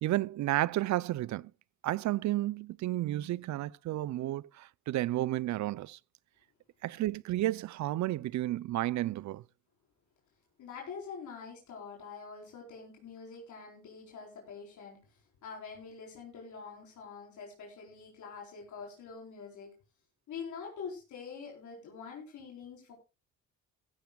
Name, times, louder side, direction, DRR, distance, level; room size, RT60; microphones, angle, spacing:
voice 1, 0.0-1.5 1.8-6.0 6.8-9.4, right 15 dB, 65° right, 0.5 m, -32 dB
voice 2, 10.6-19.7 20.3-22.9, left 5 dB, 75° left, 4.3 m, -45 dB
15.5 x 14.0 x 2.3 m
cardioid pair, 90°, 30 cm